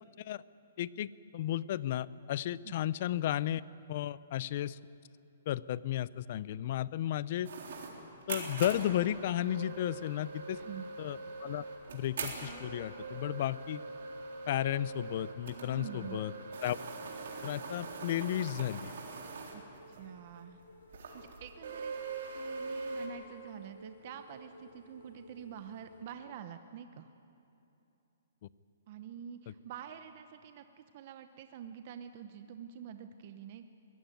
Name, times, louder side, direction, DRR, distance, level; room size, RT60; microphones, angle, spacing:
voice 1, 0.8-1.1 1.3-3.6 3.9-4.8 5.5-7.5 8.3-10.6 11.0-11.6 11.9-13.8 14.5-16.3 16.6-16.8 17.4-18.9, left 12 dB, 40° left, 19 dB, 0.5 m, -33 dB
sound 1, 7.4-20.0 20.3-20.4 20.9-23.1, right 4 dB, 65° right, 3.8 m, -42 dB
sound 2, 10.2-26.0, left 2 dB, 90° left, 5.1 m, -58 dB
voice 2, 10.5-10.9 15.7-16.2 19.5-19.6 19.9-20.6 21.1-22.0 22.3-27.1 28.9-33.6, right 9 dB, 40° right, 8 dB, 0.8 m, -47 dB
22.0 x 17.0 x 9.3 m, 2.8 s
hypercardioid pair, 165°, 0 cm